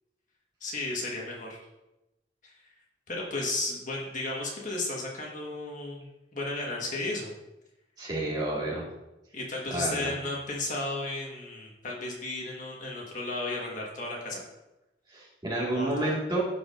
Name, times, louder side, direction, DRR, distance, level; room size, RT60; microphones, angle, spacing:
voice 1, 0.6-1.6 3.1-6.1 6.3-7.3 9.3-14.4 15.7-16.1, left 2 dB, 45° left, -2 dB, 1.5 m, -34 dB
voice 2, 8.0-8.9 9.7-10.1 15.1-16.4, right 1 dB, 25° right, -5 dB, 1.9 m, -30 dB
12.5 x 4.8 x 2.6 m, 0.94 s
head